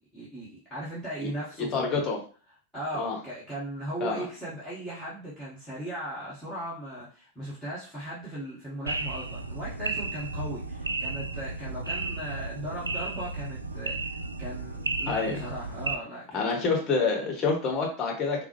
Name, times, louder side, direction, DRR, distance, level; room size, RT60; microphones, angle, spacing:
voice 1, 0.1-2.0 2.7-16.6, right 1 dB, 5° left, -10 dB, 1.3 m, -38 dB
voice 2, 1.6-2.2 3.0-3.2 4.0-4.3 15.1-15.4 16.3-18.4, left 4 dB, 30° left, 0 dB, 1.2 m, -27 dB
sound 1, 8.9-16.0, right 3 dB, 80° right, 0.3 m, -33 dB
3.8 x 2.0 x 3.1 m, 0.38 s
figure-of-eight pair, 90°, 0 cm